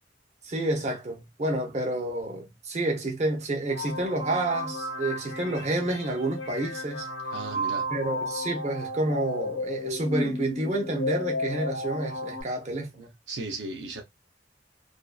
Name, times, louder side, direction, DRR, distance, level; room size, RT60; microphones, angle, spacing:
voice 1, 0.4-7.1 7.9-13.1, right 2 dB, 40° right, 0.7 m, -29 dB
sound 1, 3.7-12.4, left 1 dB, 80° left, 0.8 m, -33 dB
voice 2, 7.3-7.9 13.3-14.0, right 2 dB, 75° right, 0.6 m, -35 dB
2.5 x 2.3 x 2.3 m
head